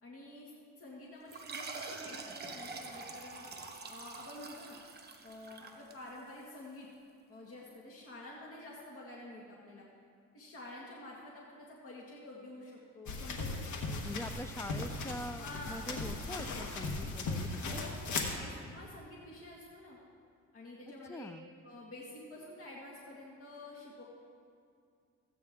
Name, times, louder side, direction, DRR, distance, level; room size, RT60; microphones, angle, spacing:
voice 1, 0.0-3.5 3.9-4.8 5.2-6.9 7.3-9.9 10.3-14.0 15.4-15.9 17.6-20.0 20.5-21.3 21.6-24.0, left 1 dB, 45° left, -4 dB, 1.8 m, -49 dB
sound 1, 1.3-6.4, right 4 dB, 35° right, 1.2 m, -45 dB
sound 2, 13.1-18.4, left 3 dB, 70° left, 1.3 m, -38 dB
voice 2, 14.0-17.8 21.1-21.5, left 1 dB, 10° left, 10 dB, 0.4 m, -44 dB
14.5 x 8.6 x 3.6 m, 2.3 s
cardioid pair, 90°, 30 cm